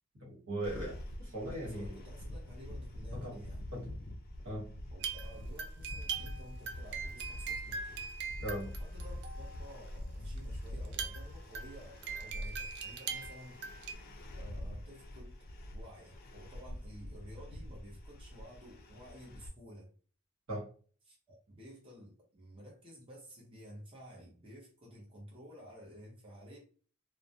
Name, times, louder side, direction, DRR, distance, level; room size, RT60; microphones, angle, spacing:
voice 1, 0.2-1.9 3.1-3.4 3.7-3.9 4.4-4.7 8.4-8.7 20.5-20.7, right 1 dB, 75° right, -2 dB, 1.1 m, -39 dB
sound 1, 0.6-19.5, left 1 dB, 45° left, 0.3 m, -45 dB
voice 2, 1.6-3.6 4.9-8.1 8.6-13.6 14.3-15.4 15.7-19.9 21.0-26.6, equal, 25° right, -5 dB, 0.7 m, -53 dB
sound 2, 5.0-9.9 10.4-10.5 10.6-13.9, right 5 dB, 50° right, 0.3 m, -41 dB
2.3 x 2.0 x 2.6 m, 0.41 s
head